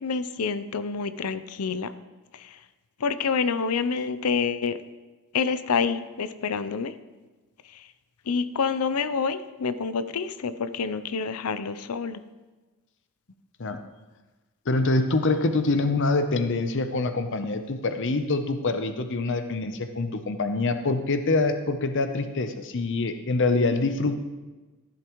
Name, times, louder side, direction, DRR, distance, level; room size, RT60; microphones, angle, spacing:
voice 1, 0.0-1.9 3.0-4.8 5.3-6.9 8.3-12.2, left 5 dB, 90° left, 13 dB, 0.6 m, -27 dB
voice 2, 14.7-24.2, left 3 dB, 60° left, 8 dB, 0.7 m, -25 dB
14.0 x 11.5 x 3.1 m, 1.2 s
head